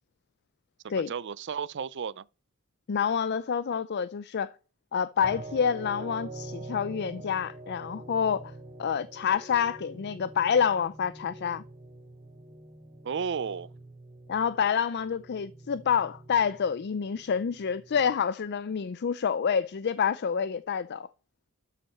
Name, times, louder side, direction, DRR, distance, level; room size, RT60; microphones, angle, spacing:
voice 1, 0.8-2.2 13.0-13.7, right 6 dB, 55° right, 0.5 m, -33 dB
voice 2, 2.9-4.5 4.9-8.5 8.8-11.6 14.3-21.1, left 7 dB, 50° left, 0.4 m, -28 dB
sound 1, 5.2-18.2, right 2 dB, 25° right, 2.7 m, -45 dB
12.5 x 5.9 x 5.7 m
head